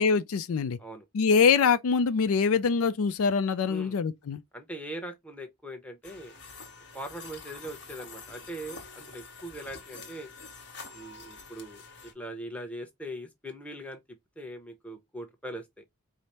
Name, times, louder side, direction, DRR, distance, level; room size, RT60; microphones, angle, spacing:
voice 1, 0.0-0.8 1.1-4.4, left 5 dB, 70° left, 0.4 m, -24 dB
voice 2, 3.7-4.0 4.5-6.3 6.9-10.3 10.9-11.8 12.1-14.0 14.4-15.7, right 1 dB, 5° left, 0.9 m, -41 dB
sound 1, 6.0-12.1, left 4 dB, 50° left, 1.2 m, -47 dB
4.9 x 2.0 x 4.2 m
head